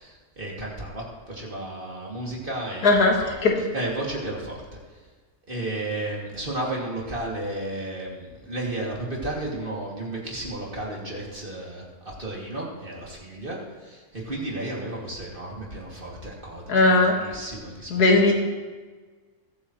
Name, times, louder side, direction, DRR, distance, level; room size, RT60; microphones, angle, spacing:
voice 1, 0.0-3.3 3.7-4.8 5.5-18.3, right 1 dB, 35° right, -3 dB, 2.7 m, -33 dB
voice 2, 2.8-3.6 16.7-17.2 17.9-18.3, left 2 dB, 85° left, 0 dB, 2.3 m, -18 dB
22.0 x 8.6 x 3.1 m, 1.4 s
omnidirectional pair, 1.6 m